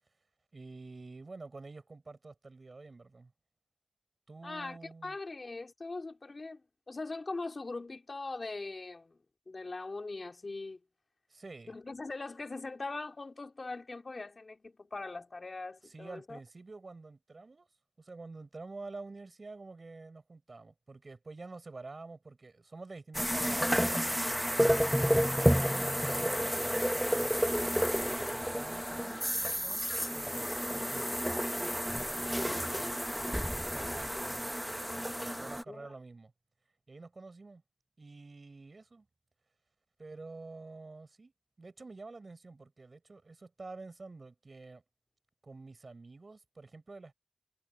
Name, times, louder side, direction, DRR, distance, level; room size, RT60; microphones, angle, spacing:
voice 1, 0.5-3.3 4.3-5.2 11.3-11.8 15.8-17.7 18.0-24.5 25.1-36.3 36.9-37.6 38.0-39.1 40.0-41.3 41.6-44.8 45.4-47.1, right 3 dB, 90° right, 6.3 m, -49 dB
voice 2, 4.4-4.8 5.0-6.6 6.9-9.2 9.5-10.8 11.7-16.4 35.7-35.9, left 3 dB, 85° left, 3.0 m, -41 dB
sound 1, 23.1-35.6, equal, 5° right, 1.0 m, -31 dB
wide cardioid pair, 55°, 0 cm